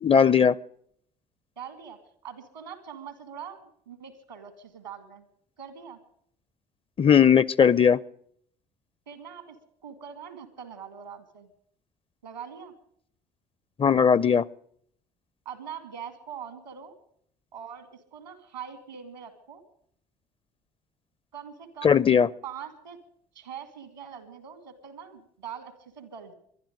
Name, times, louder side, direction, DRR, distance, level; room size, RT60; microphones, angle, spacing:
voice 1, 0.0-0.6 7.0-8.0 13.8-14.4 21.8-22.3, left 7 dB, 25° left, 23 dB, 0.5 m, -18 dB
voice 2, 1.6-5.2 5.6-6.0 9.1-9.6 9.8-11.5 12.2-12.7 15.5-16.9 17.5-19.6 21.3-22.0 22.4-23.0 23.3-26.3, right 8 dB, 90° right, 12 dB, 2.0 m, -42 dB
22.0 x 12.0 x 5.2 m, 0.65 s
figure-of-eight pair, 55°, 21 cm